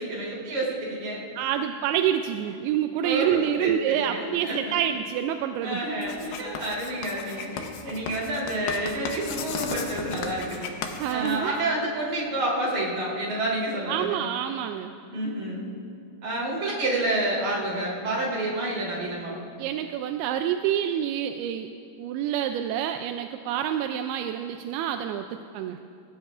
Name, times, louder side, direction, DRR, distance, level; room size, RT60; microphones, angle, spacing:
voice 1, 0.0-1.2 3.0-4.7 5.6-10.7 11.1-14.2 15.1-15.7 16.2-19.4, right 1 dB, 45° right, -5 dB, 4.5 m, -29 dB
voice 2, 1.4-5.8 11.0-11.5 13.9-14.9 19.6-21.7 22.0-25.3 25.5-25.8, right 10 dB, 85° right, 7 dB, 2.3 m, -27 dB
Writing, 6.0-11.8, left 6 dB, 75° left, 2.9 m, -36 dB
26.0 x 16.0 x 2.5 m, 2.5 s
omnidirectional pair, 4.8 m